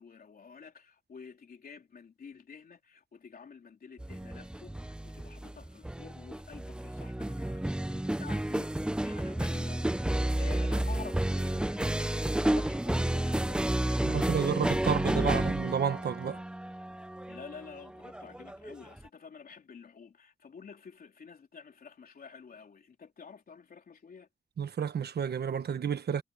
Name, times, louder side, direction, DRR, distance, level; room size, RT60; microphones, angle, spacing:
voice 1, 0.0-15.5 17.3-24.3, left 6 dB, 60° left, 3.6 m, -49 dB
sound 1, 4.0-19.1, right 1 dB, 5° right, 0.4 m, -31 dB
voice 2, 14.0-16.4 24.6-26.2, right 7 dB, 75° right, 1.2 m, -31 dB
wide cardioid pair, 175°, 17 cm